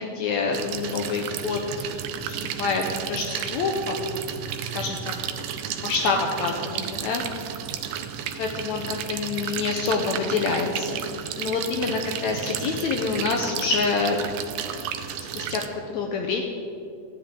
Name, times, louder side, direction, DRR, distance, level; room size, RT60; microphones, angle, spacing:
voice 1, 0.0-1.9 2.2-3.9 4.7-5.1 5.8-7.2 8.4-11.0 11.4-14.2 15.4-16.4, left 4 dB, 75° left, 2 dB, 1.7 m, -27 dB
sound 1, 0.5-15.7, right 8 dB, 80° right, 2.2 m, -33 dB
14.5 x 9.9 x 3.6 m, 2.5 s
omnidirectional pair, 3.9 m